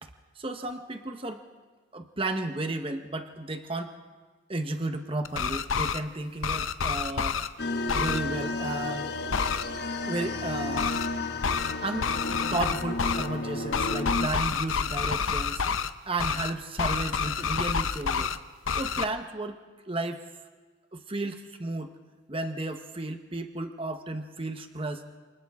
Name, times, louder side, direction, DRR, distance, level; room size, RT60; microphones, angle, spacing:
voice 1, 0.4-1.4 1.9-4.0 4.5-7.4 7.9-9.1 10.1-11.0 11.8-12.1 12.5-15.6 16.1-18.3 18.7-19.6 19.9-20.2 20.9-21.9 22.3-25.1, right 2 dB, 25° right, 6 dB, 1.1 m, -33 dB
sound 1, 5.2-6.0 6.4-7.5 7.9-8.2 9.3-9.6 10.8-11.1 11.4-11.7 12.0-13.3 13.7-15.9 16.2-16.5 16.8-18.4 18.7-19.0, left 6 dB, 80° left, 0.7 m, -28 dB
sound 2, 7.6-14.3, left 2 dB, 55° left, 1.2 m, -32 dB
28.0 x 28.0 x 3.7 m, 1.4 s
head